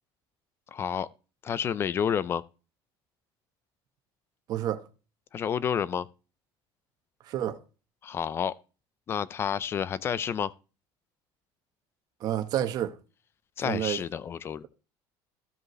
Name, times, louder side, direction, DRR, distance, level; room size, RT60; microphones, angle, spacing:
voice 1, 0.7-1.1 1.4-2.4 5.3-6.1 8.0-8.5 9.1-10.5 13.6-14.7, left 8 dB, 25° left, 0.5 m, -29 dB
voice 2, 4.5-4.8 7.3-7.6 12.2-13.0 13.6-14.0, right 11 dB, 45° right, 1.2 m, -29 dB
15.0 x 5.3 x 3.1 m
cardioid pair, 170°, 10 cm